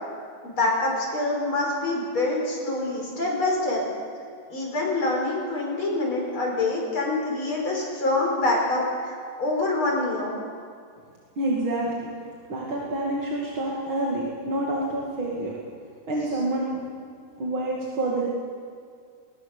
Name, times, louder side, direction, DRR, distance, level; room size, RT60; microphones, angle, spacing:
voice 1, 0.4-3.8 4.5-10.4, left 2 dB, 80° left, -2 dB, 5.9 m, -26 dB
voice 2, 11.4-12.1 12.5-15.5 16.1-16.8 17.4-18.3, right 1 dB, 75° right, -4 dB, 3.2 m, -27 dB
22.0 x 20.0 x 6.8 m, 2.2 s
omnidirectional pair, 2.3 m